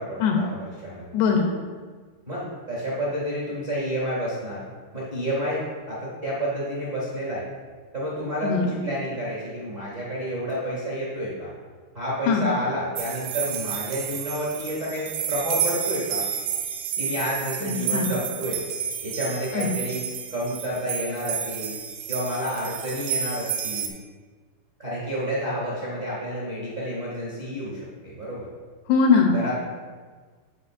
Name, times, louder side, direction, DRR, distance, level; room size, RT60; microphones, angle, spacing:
voice 1, 0.0-1.0 2.3-4.6 4.9-7.4 7.9-11.5 11.9-16.2 17.0-18.6 19.0-20.0 20.3-21.8 22.1-23.9 24.8-28.5 29.3-29.6, equal, 50° right, -7 dB, 0.9 m, -30 dB
voice 2, 1.1-1.5 8.4-8.8 12.3-12.5 17.6-18.1 19.5-19.7 28.9-29.4, left 5 dB, 80° left, 1 dB, 2.5 m, -21 dB
sound 1, 13.0-23.9, right 8 dB, 80° right, 2.4 m, -31 dB
14.5 x 5.1 x 2.6 m, 1.5 s
omnidirectional pair, 5.1 m